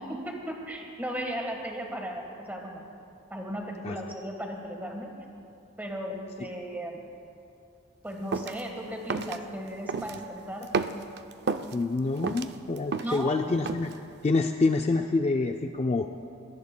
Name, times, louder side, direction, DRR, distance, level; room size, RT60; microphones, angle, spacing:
voice 1, 0.0-2.9 3.3-5.1 5.8-7.1 8.0-10.9 13.0-13.4, equal, 10° right, 1 dB, 1.4 m, -36 dB
sound 1, 8.3-8.6 9.1-9.4 9.9-10.2 10.6-11.7 12.1-13.2 13.7-14.0, right 4 dB, 50° right, 0.4 m, -31 dB
voice 2, 11.7-13.9 14.2-16.1, left 3 dB, 30° left, 5 dB, 0.4 m, -26 dB
22.5 x 17.5 x 2.2 m, 2.5 s
head